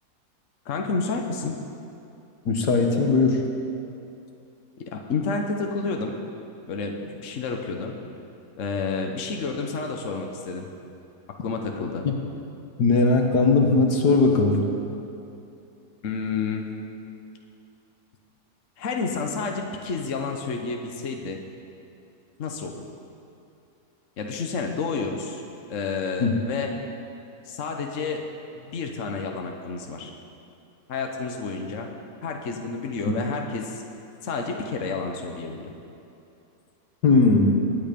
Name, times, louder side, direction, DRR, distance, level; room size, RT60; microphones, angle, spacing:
voice 1, 0.6-1.5 4.8-6.1 6.7-7.9 8.6-10.7 11.3-12.1 16.0-16.7 18.8-21.4 22.4-22.8 24.2-25.4 25.7-26.7 27.4-30.1 30.9-31.9 32.2-33.8 34.2-35.7, left 4 dB, 55° left, 3 dB, 1.3 m, -30 dB
voice 2, 2.5-3.4 12.1-12.2 12.8-14.6 26.2-26.3 37.0-37.5, left 3 dB, 75° left, 3 dB, 2.0 m, -19 dB
22.0 x 9.7 x 5.3 m, 2.7 s
omnidirectional pair, 1.7 m